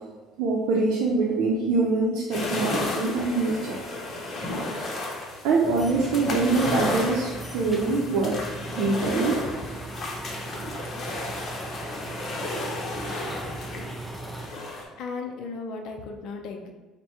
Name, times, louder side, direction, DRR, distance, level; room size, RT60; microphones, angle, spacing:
voice 1, 0.4-3.8 5.4-9.4, right 3 dB, 70° right, -3 dB, 0.6 m, -24 dB
sound 1, 2.3-14.8, left 2 dB, 35° left, 0.9 m, -33 dB
sound 2, 5.6-14.5, right 2 dB, 5° right, 0.4 m, -39 dB
voice 2, 15.0-16.7, left 4 dB, 60° left, 4 dB, 0.5 m, -35 dB
4.5 x 2.2 x 4.3 m, 1.3 s
cardioid pair, 125°, 0 cm